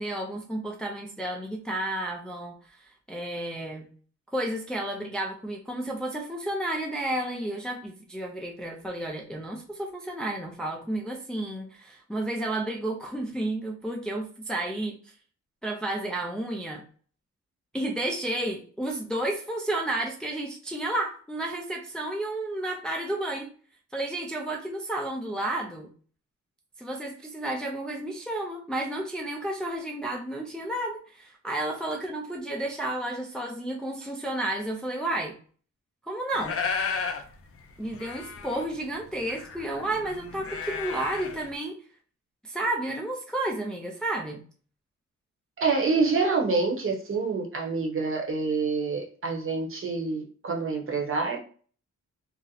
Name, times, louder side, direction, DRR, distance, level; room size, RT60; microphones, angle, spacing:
voice 1, 0.0-2.8 3.1-3.9 4.3-15.0 15.6-16.8 17.7-23.5 23.9-25.9 26.8-35.4 36.1-36.6 37.8-41.8 42.4-44.4, right 1 dB, 5° left, -1 dB, 0.4 m, -31 dB
sound 1, 36.3-37.2 37.6-37.7 37.8-41.5, left 5 dB, 50° left, 0.5 m, -34 dB
voice 2, 45.6-51.4, right 4 dB, 45° right, 1 dB, 0.8 m, -27 dB
2.7 x 2.0 x 3.8 m, 0.43 s
wide cardioid pair, 130°, 29 cm